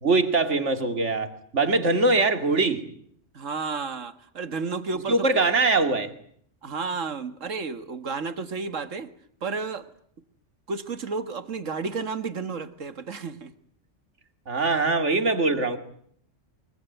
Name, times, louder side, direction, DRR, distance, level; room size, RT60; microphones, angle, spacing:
voice 1, 0.0-2.9 5.1-6.1 14.5-15.8, right 3 dB, 70° right, 9 dB, 2.6 m, -22 dB
voice 2, 3.3-5.3 6.6-9.1 9.4-9.9 10.7-13.5, right 4 dB, 85° right, 12 dB, 2.0 m, -32 dB
24.0 x 23.0 x 9.2 m, 0.65 s
omnidirectional pair, 1.3 m